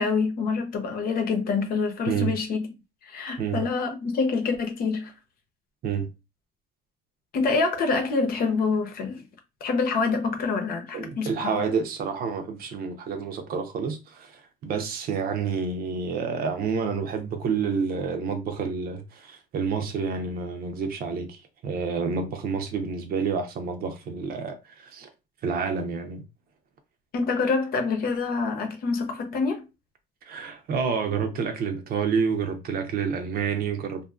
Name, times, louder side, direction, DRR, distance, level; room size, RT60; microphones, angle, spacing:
voice 1, 0.0-2.7 3.1-5.1 7.3-9.2 9.6-11.6 27.1-29.6, left 4 dB, 60° left, 0.8 m, -26 dB
voice 2, 10.9-24.6 24.8-25.1 25.4-26.2 30.2-34.1, right 5 dB, 60° right, 0.7 m, -29 dB
2.7 x 2.6 x 2.4 m
cardioid pair, 110°, 17 cm